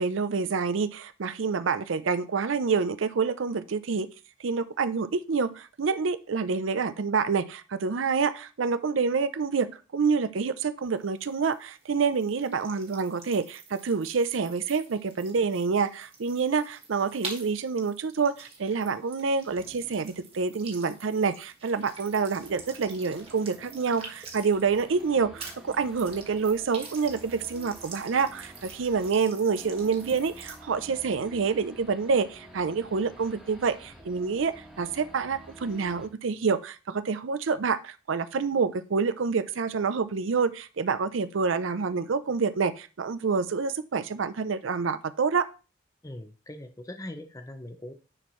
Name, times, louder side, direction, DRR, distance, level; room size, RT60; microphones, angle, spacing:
voice 1, 0.0-4.1 4.4-45.5, right 5 dB, 80° right, 0.5 m, -27 dB
sound 1, 10.8-25.1 25.4-30.6, right 4 dB, 30° right, 1.6 m, -46 dB
Race car auto racing / Idling / Accelerating revving vroom, 19.5-36.1, equal, ahead, 1.3 m, -50 dB
voice 2, 46.0-47.9, left 1 dB, 15° left, 0.6 m, -41 dB
9.8 x 4.3 x 3.1 m
head